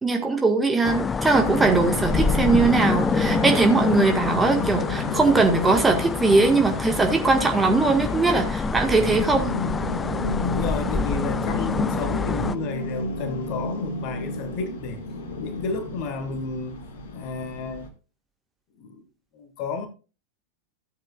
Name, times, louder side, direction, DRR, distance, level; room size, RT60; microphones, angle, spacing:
voice 1, 0.0-9.6, right 3 dB, 10° right, 1.6 m, -20 dB
sound 1, 0.8-12.5, left 4 dB, 15° left, 0.3 m, -26 dB
sound 2, 1.4-17.9, left 1 dB, 60° left, 1.5 m, -33 dB
voice 2, 10.4-15.0 15.4-16.9 17.1-17.9 18.8-19.0 19.3-19.9, left 4 dB, 40° left, 1.5 m, -32 dB
14.5 x 7.9 x 2.4 m
figure-of-eight pair, 90°, 0 cm